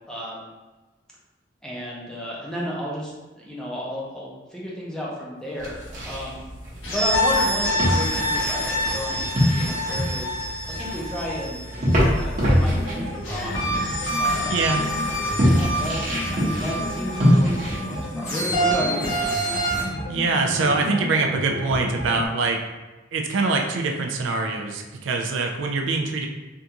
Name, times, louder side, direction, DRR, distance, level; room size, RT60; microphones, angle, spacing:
voice 1, 0.1-0.5 1.6-5.7 6.0-6.4 6.8-10.3 10.7-11.6 12.1-13.7 14.2-14.6 15.4-16.0 16.3-19.1, left 1 dB, 5° left, -6 dB, 0.6 m, -32 dB
sound 1, 5.6-17.8, equal, 40° right, 0.9 m, -25 dB
sound 2, 6.8-12.4 13.2-19.8, equal, 90° left, 1.2 m, -27 dB
sound 3, 12.7-22.3, left 1 dB, 60° left, 1.2 m, -33 dB
voice 2, 14.5-14.8 20.1-22.6 23.1-26.3, right 3 dB, 80° right, 2 dB, 0.4 m, -24 dB
3.5 x 2.4 x 2.8 m, 1.2 s
head